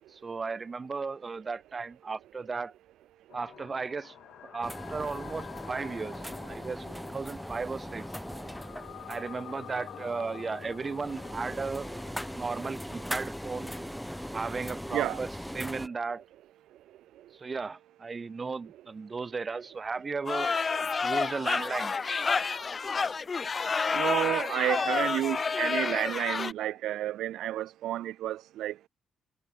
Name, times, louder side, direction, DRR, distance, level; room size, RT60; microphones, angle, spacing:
voice 1, 0.1-2.7 3.3-4.1 4.4-8.1 9.1-11.9 12.3-13.7 14.3-16.2 17.3-20.5 21.0-22.0, right 4 dB, 30° right, 1.0 m, -35 dB
sound 1, 3.3-13.4, left 11 dB, 70° left, 1.0 m, -48 dB
sound 2, 4.6-15.9, equal, ahead, 1.7 m, -40 dB
sound 3, 20.2-26.5, left 5 dB, 35° left, 0.3 m, -29 dB
voice 2, 23.9-28.9, right 13 dB, 80° right, 0.9 m, -31 dB
cardioid pair, 90°, 0 cm